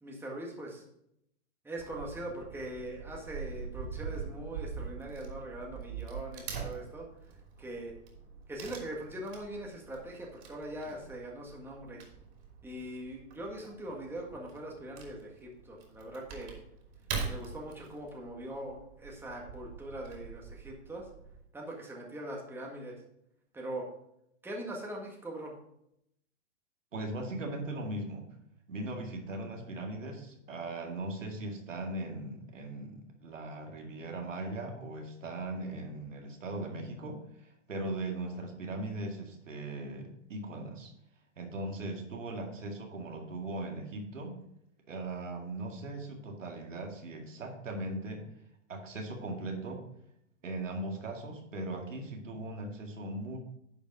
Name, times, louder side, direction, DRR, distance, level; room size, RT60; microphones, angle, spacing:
voice 1, 0.0-0.8 1.6-7.1 7.6-7.9 8.5-12.0 12.6-16.6 17.3-21.1 21.5-23.0 23.5-23.9 24.4-25.6, right 1 dB, 5° right, -1 dB, 1.8 m, -41 dB
Wood / Tearing, 1.8-21.4, right 5 dB, 45° right, 3.2 m, -44 dB
voice 2, 26.9-28.3 28.7-40.9 41.4-44.4 44.9-48.2 48.7-49.9 50.4-53.4, right 2 dB, 90° right, 2 dB, 2.2 m, -39 dB
10.5 x 5.2 x 5.0 m, 0.76 s
hypercardioid pair, 125°, 37 cm